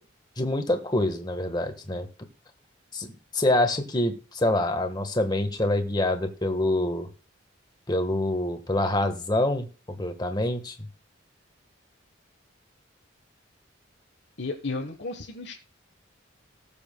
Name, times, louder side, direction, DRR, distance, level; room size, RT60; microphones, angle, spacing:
voice 1, 0.4-2.1 2.9-3.1 3.3-7.1 7.9-10.9, left 1 dB, 20° left, 7 dB, 1.3 m, -26 dB
voice 2, 14.4-15.5, left 3 dB, 55° left, 1 dB, 1.1 m, -33 dB
19.5 x 7.1 x 2.2 m, 0.36 s
head